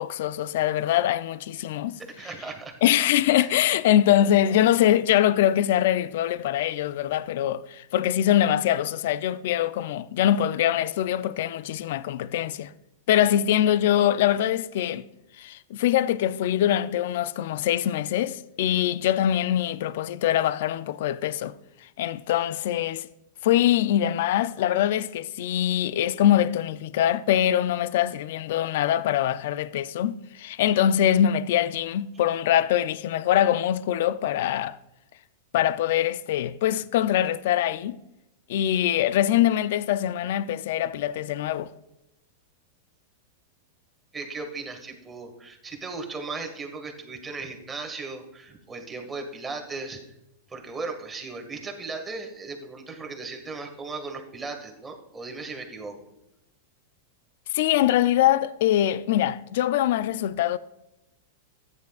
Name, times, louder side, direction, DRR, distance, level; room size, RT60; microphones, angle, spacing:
voice 1, 0.0-2.0 2.8-12.7 13.1-15.1 15.4-21.5 22.0-23.1 23.4-34.8 35.5-38.0 38.5-41.7 57.5-60.6, left 11 dB, 65° left, 0.4 m, -23 dB
voice 2, 2.0-2.8 3.4-3.5 44.1-50.0 50.5-56.1, right 3 dB, 15° right, 1.8 m, -37 dB
14.0 x 9.6 x 2.4 m
hypercardioid pair, 130°, 0 cm